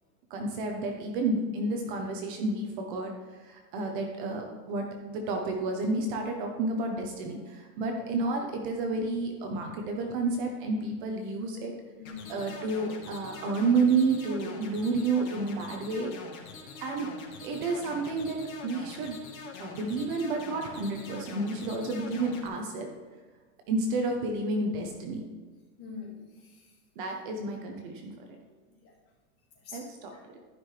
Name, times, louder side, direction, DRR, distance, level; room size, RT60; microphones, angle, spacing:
voice 1, 0.3-11.7 12.3-16.1 16.8-17.1 17.4-19.2 19.6-22.9 23.7-25.2 27.0-28.2 29.7-30.2, right 3 dB, 35° right, 2 dB, 1.0 m, -30 dB
sound 1, 12.0-22.5, left 5 dB, 70° left, 2.1 m, -44 dB
voice 2, 12.0-12.4 25.8-26.7 28.7-28.9 29.6-30.2, left 5 dB, 30° left, -3 dB, 2.5 m, -45 dB
13.0 x 5.8 x 3.3 m, 1.4 s
supercardioid pair, 160°, 44 cm